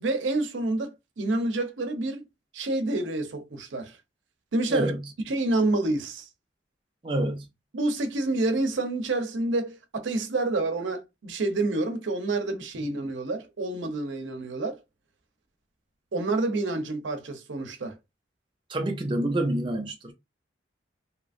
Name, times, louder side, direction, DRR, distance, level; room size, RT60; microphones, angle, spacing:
voice 1, 0.0-2.2 2.5-4.0 4.5-4.9 5.3-6.3 7.7-14.8 16.1-18.0, right 2 dB, 90° right, 0.6 m, -28 dB
voice 2, 4.7-5.1 7.0-7.5 18.7-20.1, right 1 dB, 25° right, 0.4 m, -27 dB
2.8 x 2.4 x 2.5 m
head